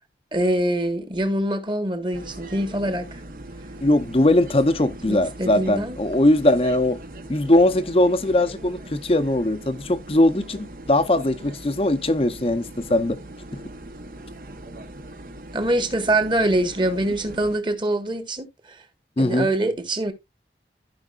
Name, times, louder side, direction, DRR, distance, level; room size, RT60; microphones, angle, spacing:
voice 1, 0.3-3.2 5.1-6.0 15.5-18.8 19.2-20.1, right 1 dB, 25° right, 1.5 m, -24 dB
sound 1, 2.1-17.6, right 1 dB, 50° right, 1.1 m, -40 dB
voice 2, 3.8-7.0 7.3-13.2 13.5-13.6 19.2-19.5, left 1 dB, 35° left, 0.8 m, -20 dB
14.5 x 5.2 x 2.5 m
head